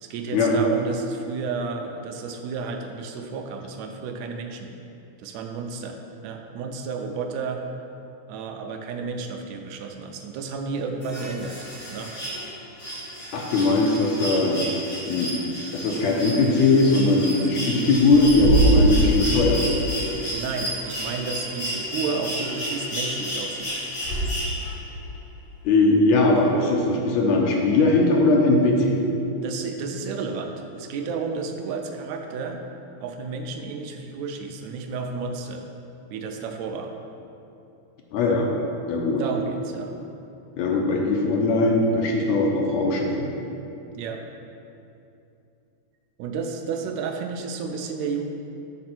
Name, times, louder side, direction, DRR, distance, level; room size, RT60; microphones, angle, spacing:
voice 1, 0.0-4.7 5.2-7.6 8.3-12.1 20.3-23.8 29.4-32.6 33.0-35.7 36.1-36.9 39.2-39.9 44.0-44.2 46.2-48.3, right 4 dB, 80° right, 4 dB, 1.8 m, -32 dB
sound 1, 11.0-24.9 26.3-26.4, equal, 40° left, 2.4 m, -32 dB
voice 2, 13.3-14.6 15.1-15.4 15.7-19.8 25.6-29.1 38.1-38.5 38.9-39.2 40.6-43.3, left 2 dB, 75° left, 0 dB, 1.9 m, -20 dB
Bird / Wind, 16.0-24.7, right 2 dB, 60° left, 2.4 m, -26 dB
6.7 x 4.2 x 5.9 m, 2.7 s
omnidirectional pair, 3.3 m